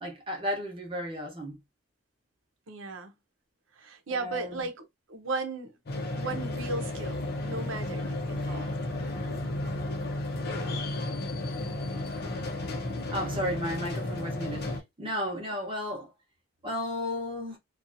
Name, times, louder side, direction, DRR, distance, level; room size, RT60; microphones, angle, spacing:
voice 1, 0.0-1.6 4.1-4.7 13.1-16.1 16.6-17.6, left 1 dB, 25° right, 0.9 m, -34 dB
voice 2, 2.7-3.1 3.8-5.7 6.2-8.7, right 3 dB, 80° right, 0.7 m, -36 dB
sound 1, 5.9-14.8, left 1 dB, 55° left, 0.7 m, -33 dB
2.7 x 2.3 x 2.6 m
head